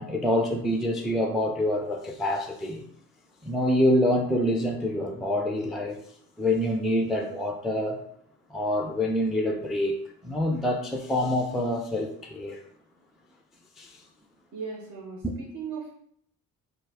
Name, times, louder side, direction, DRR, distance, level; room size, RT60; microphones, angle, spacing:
voice 1, 0.0-2.8 3.4-6.0 6.4-8.0 8.5-10.0 10.2-12.6 13.8-14.0 15.2-15.3, left 1 dB, ahead, 0.3 m, -26 dB
voice 2, 14.5-15.9, right 5 dB, 60° right, 0.8 m, -37 dB
2.3 x 2.1 x 3.3 m
supercardioid pair, 60°, 36 cm